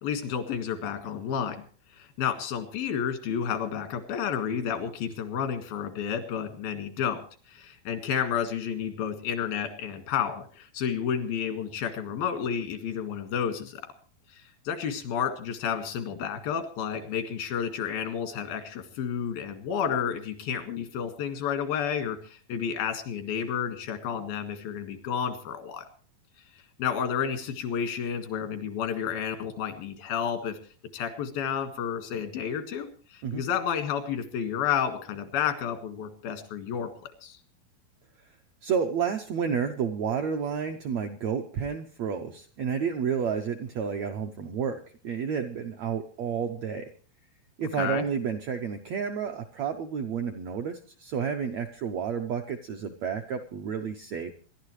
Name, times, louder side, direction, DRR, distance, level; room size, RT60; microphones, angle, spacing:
voice 1, 0.0-1.6 1.9-13.8 14.3-25.9 26.8-30.6 30.9-36.9 37.2-37.4 47.7-48.1, left 8 dB, 90° left, 7 dB, 3.6 m, -31 dB
voice 2, 38.6-46.9 47.6-54.3, right 7 dB, 80° right, 5 dB, 1.5 m, -30 dB
25.5 x 11.5 x 3.2 m, 0.42 s
omnidirectional pair, 4.1 m